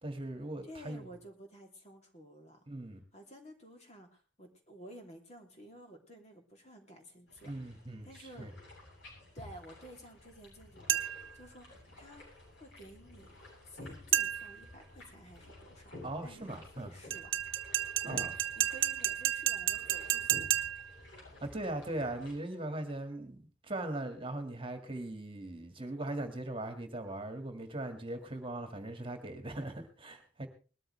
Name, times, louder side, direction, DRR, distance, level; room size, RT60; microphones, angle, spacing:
voice 1, 0.0-1.1 2.7-3.0 7.4-8.1 8.4-8.5 16.0-16.9 18.1-18.3 21.4-30.5, right 1 dB, 30° right, 6 dB, 1.9 m, -39 dB
voice 2, 0.6-2.7 3.1-7.7 8.0-8.5 9.3-12.2 12.6-13.4 13.6-15.9 16.2-17.4 17.8-20.4, equal, 35° left, 3 dB, 3.0 m, -53 dB
sound 1, 7.3-22.3, left 2 dB, 65° left, 7.5 m, -52 dB
sound 2, 10.9-11.3 14.1-14.6 17.1-20.9, right 11 dB, 85° right, 0.9 m, -32 dB
20.5 x 13.0 x 3.3 m, 0.35 s
head